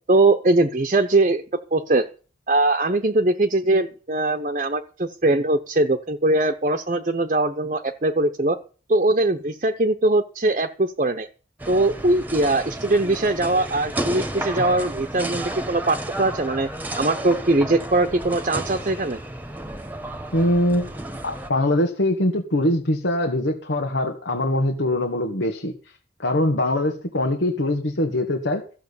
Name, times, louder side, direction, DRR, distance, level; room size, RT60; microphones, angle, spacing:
voice 1, 0.1-1.4 1.7-2.0 2.5-8.6 8.9-11.3 11.7-16.7 17.0-19.2, right 2 dB, 40° right, 6 dB, 0.8 m, -21 dB
sound 1, 11.6-21.5, right 1 dB, 10° right, 1.3 m, -32 dB
voice 2, 20.3-20.9 21.2-25.7 26.2-28.6, left 1 dB, 90° left, 3 dB, 1.9 m, -22 dB
14.5 x 7.6 x 7.1 m, 0.38 s
head